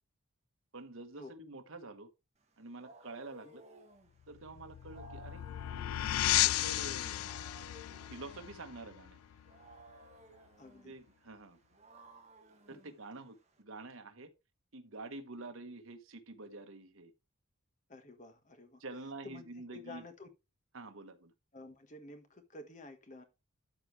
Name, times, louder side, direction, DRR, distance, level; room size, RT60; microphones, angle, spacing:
voice 1, 0.7-2.1 2.6-3.6 4.3-5.4 6.4-7.4 8.1-9.2 10.8-11.6 12.7-14.3 14.7-17.1 18.8-20.0 20.7-21.3, right 2 dB, 70° right, 1.2 m, -47 dB
Wild animals, 2.4-13.6, right 2 dB, 30° right, 1.5 m, -58 dB
sound 1, 4.3-9.7, left 14 dB, 90° left, 0.3 m, -34 dB
voice 2, 10.6-11.0 12.7-13.0 17.9-18.8 19.2-20.3 21.5-23.2, left 2 dB, 35° left, 1.4 m, -51 dB
12.5 x 4.7 x 3.2 m
head